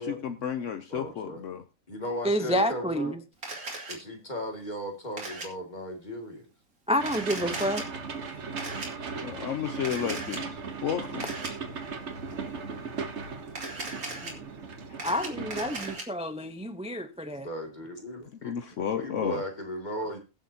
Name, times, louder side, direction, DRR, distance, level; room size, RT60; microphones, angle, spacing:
voice 1, 0.0-1.6 9.2-11.2 14.9-15.0 18.4-19.4, left 8 dB, 65° left, 1.1 m, -32 dB
voice 2, 0.9-1.4 1.9-3.2 3.9-6.5 17.3-18.5 18.9-20.2, equal, 30° left, 2.6 m, -36 dB
voice 3, 2.2-3.2 6.9-7.8 15.0-17.5, equal, 5° right, 0.7 m, -29 dB
Camera, 3.4-4.0 5.2-5.5 7.0-7.8 8.6-8.9 9.8-10.4 11.2-11.5 13.5-14.3 14.8-16.0, right 3 dB, 85° right, 3.1 m, -37 dB
sound 1, 7.0-16.0, right 5 dB, 55° right, 1.4 m, -37 dB
22.0 x 7.5 x 2.8 m
omnidirectional pair, 1.5 m